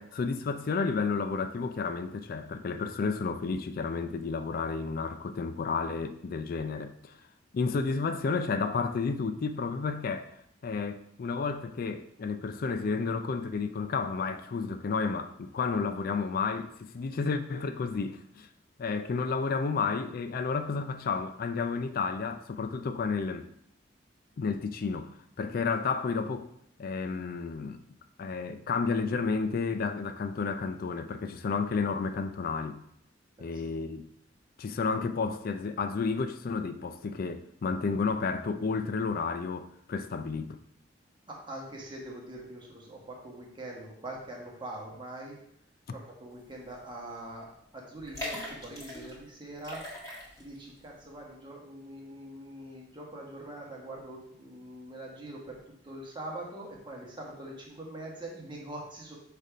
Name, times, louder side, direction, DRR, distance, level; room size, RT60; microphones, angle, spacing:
voice 1, 0.0-7.2 7.5-10.3 10.6-18.5 18.8-23.5 24.4-26.5 26.8-27.8 28.2-32.8 33.4-34.1 34.6-40.6, left 4 dB, 50° left, 0.4 m, -31 dB
voice 2, 33.4-33.7 41.3-45.4 45.9-47.5 47.7-49.8 50.4-55.6 55.8-59.2, right 1 dB, 25° right, 1.5 m, -43 dB
sound 1, 46.7-46.9 47.2-47.3 48.0-49.2 49.6-50.6 51.0-51.1, left 1 dB, 20° left, 2.0 m, -40 dB
6.5 x 3.5 x 5.0 m
head